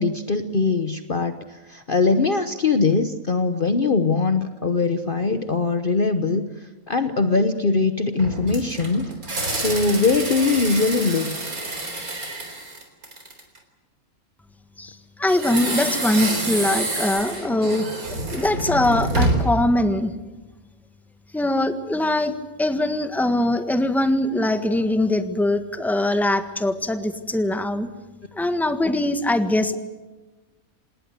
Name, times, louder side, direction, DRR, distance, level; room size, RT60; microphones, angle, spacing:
voice 1, 0.0-6.4 6.9-9.1 9.5-11.4, left 4 dB, 40° left, 9 dB, 1.1 m, -21 dB
sound 1, 8.2-13.6 15.3-19.6, right 2 dB, 85° right, 4.4 m, -27 dB
voice 2, 15.2-17.9 18.3-20.1 21.3-22.3 22.6-27.9 28.3-29.8, left 1 dB, ahead, 9 dB, 1.4 m, -22 dB
27.0 x 19.5 x 8.1 m, 1.2 s
omnidirectional pair, 1.5 m